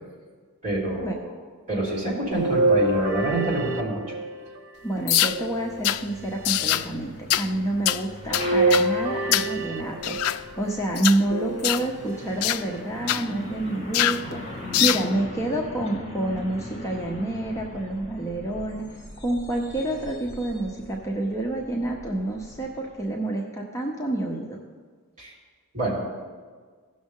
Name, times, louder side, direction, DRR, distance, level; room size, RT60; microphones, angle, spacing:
voice 1, 0.6-1.3 1.7-4.0 25.2-25.3 25.7-26.0, right 1 dB, 35° right, -5 dB, 3.3 m, -26 dB
sound 1, 2.3-4.6 5.3-6.3 8.3-10.4 11.3-12.2 12.8-12.9 14.3-14.4, right 2 dB, 80° right, 1.0 m, -26 dB
voice 2, 4.8-24.6, right 1 dB, 15° left, -1 dB, 0.7 m, -28 dB
sound 2, 5.1-5.4 5.8-6.0 6.4-6.9 7.3-7.5 7.8-8.0 8.3-8.9 9.3-9.5 10.0-10.4 10.9-11.2 11.6-11.9 12.4-12.6 13.1-13.2 13.9-14.2 14.7-15.1, left 13 dB, 70° left, 0.3 m, -23 dB
Truck, 5.4-23.1, left 1 dB, 30° left, 2.7 m, -41 dB
16.5 x 6.2 x 3.7 m, 1.5 s
head